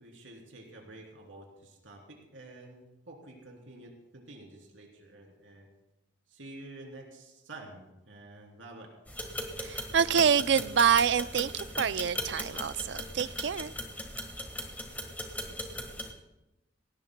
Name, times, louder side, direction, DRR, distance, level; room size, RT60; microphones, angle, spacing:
voice 1, 0.0-5.7 6.3-8.9, right 2 dB, 90° right, 3.1 m, -49 dB
sound 1, 9.1-16.1, left 1 dB, 10° left, 1.5 m, -38 dB
voice 2, 9.6-13.7, right 7 dB, 65° right, 0.4 m, -26 dB
18.5 x 17.0 x 2.2 m
head